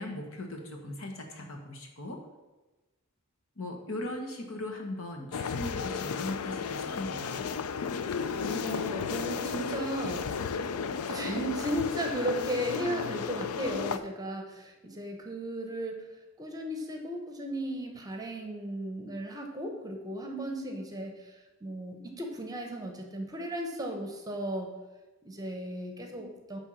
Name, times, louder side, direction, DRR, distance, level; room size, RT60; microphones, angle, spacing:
voice 1, 0.0-2.2 3.6-7.5, left 1 dB, 65° left, 2 dB, 1.3 m, -39 dB
sound 1, 5.3-14.0, left 6 dB, 85° left, 0.5 m, -33 dB
voice 2, 8.4-10.3 11.1-16.0 16.4-21.4 21.6-24.7 25.2-26.6, right 1 dB, 15° right, 3 dB, 1.0 m, -35 dB
9.8 x 3.7 x 6.3 m, 1.1 s
head